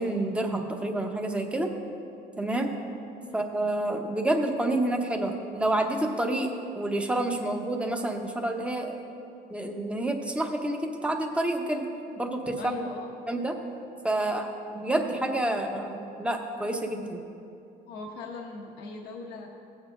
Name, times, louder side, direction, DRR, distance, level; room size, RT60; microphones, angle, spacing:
voice 1, 0.0-1.7 2.4-2.7 3.3-9.0 9.5-11.8 12.2-12.8 13.3-13.6 14.0-17.2, right 1 dB, 5° right, 3 dB, 0.9 m, -28 dB
voice 2, 12.6-13.1 17.9-19.5, left 3 dB, 80° left, 0 dB, 1.0 m, -40 dB
16.5 x 8.1 x 2.6 m, 2.6 s
cardioid pair, 110°, 17 cm